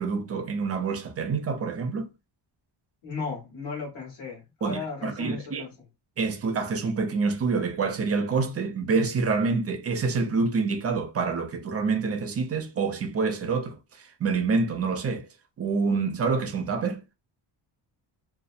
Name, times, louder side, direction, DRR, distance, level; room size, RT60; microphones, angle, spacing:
voice 1, 0.0-2.1 4.6-5.7 6.2-15.3 15.6-17.0, right 4 dB, 35° right, 0.4 m, -27 dB
voice 2, 3.0-5.7, left 4 dB, 70° left, 1.2 m, -35 dB
2.7 x 2.0 x 2.3 m
wide cardioid pair, 160°, 48 cm